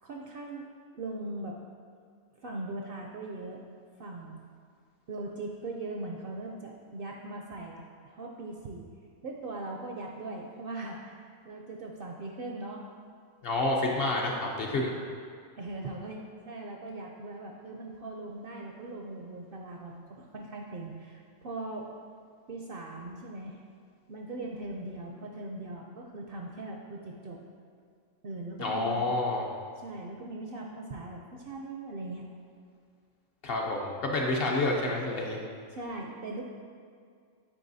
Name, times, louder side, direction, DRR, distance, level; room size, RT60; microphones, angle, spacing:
voice 1, 0.0-0.7 0.9-1.6 2.4-3.6 4.0-4.4 5.1-8.9 9.2-12.9 15.6-21.9 22.5-23.6 24.1-27.4 28.2-28.9 29.8-32.3 35.7-36.4, right 2 dB, 60° right, 0 dB, 0.6 m, -40 dB
voice 2, 13.4-14.9 28.6-29.5 33.4-35.4, left 2 dB, 55° left, -1 dB, 0.8 m, -29 dB
8.6 x 4.7 x 2.6 m, 2.2 s
omnidirectional pair, 1.3 m